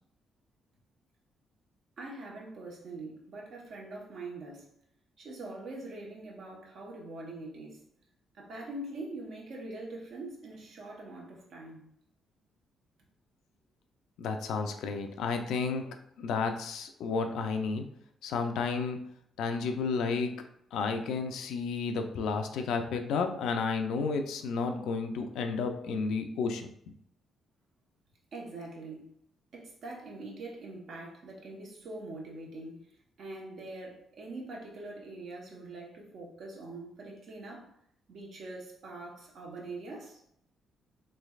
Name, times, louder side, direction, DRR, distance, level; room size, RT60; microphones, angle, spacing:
voice 1, 2.0-4.7 5.2-7.8 8.3-11.9 28.3-29.1 29.5-32.8 33.2-37.7 38.1-40.2, right 2 dB, 65° right, -2 dB, 1.0 m, -43 dB
voice 2, 14.2-17.9 18.2-19.0 19.4-20.4 20.7-26.7, left 4 dB, 80° left, 5 dB, 0.4 m, -32 dB
3.2 x 3.2 x 2.3 m, 0.70 s
cardioid pair, 90°, 0 cm